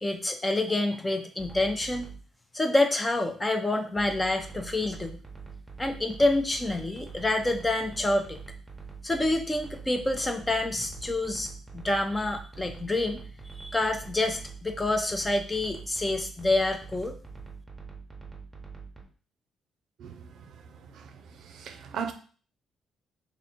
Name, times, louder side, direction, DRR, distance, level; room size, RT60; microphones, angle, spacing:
voice 1, 0.0-2.1 2.5-5.2 5.8-8.4 9.0-17.2, left 2 dB, 20° left, 0.6 m, -27 dB
sound 1, 1.4-2.2 4.0-19.0, right 5 dB, 15° right, 0.9 m, -44 dB
voice 2, 20.0-20.5 20.9-22.1, right 7 dB, 75° right, 0.5 m, -38 dB
3.1 x 2.7 x 4.2 m
cardioid pair, 90°, 0 cm